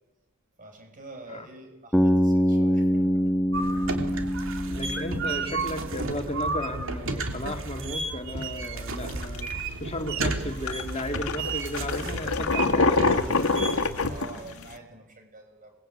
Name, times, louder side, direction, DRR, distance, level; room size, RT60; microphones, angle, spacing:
voice 1, 0.6-3.8 14.0-15.7, right 2 dB, 40° right, 5 dB, 6.7 m, -46 dB
Bass guitar, 1.9-6.0, equal, 5° left, 1.8 m, -25 dB
sound 1, 3.5-14.2, right 3 dB, 60° right, 3.1 m, -32 dB
voice 2, 4.6-13.5 14.3-14.6, left 1 dB, 30° left, 4 dB, 2.6 m, -35 dB
coffee boiling, 8.4-8.6 9.1-9.6 10.2-10.3 10.7-14.7, left 3 dB, 75° left, 1.8 m, -25 dB
28.5 x 22.0 x 8.8 m, 1.1 s
head